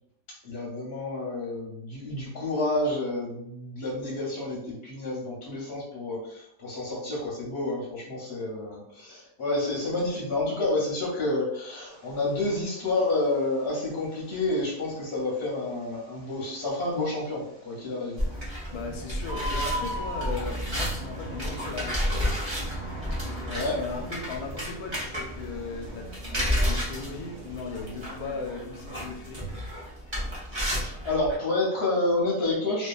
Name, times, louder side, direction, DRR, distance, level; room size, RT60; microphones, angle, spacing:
voice 1, 0.4-18.4 23.4-23.8 30.5-32.9, left 2 dB, 55° left, -5 dB, 0.8 m, -29 dB
Bird, 11.9-28.3, right 1 dB, 55° right, 1.2 m, -42 dB
sound 1, 18.2-31.3, equal, 30° right, 0.5 m, -32 dB
voice 2, 18.7-22.4 23.2-29.7, left 4 dB, 85° left, 2 dB, 1.1 m, -38 dB
2.7 x 2.4 x 2.3 m, 0.75 s
omnidirectional pair, 1.6 m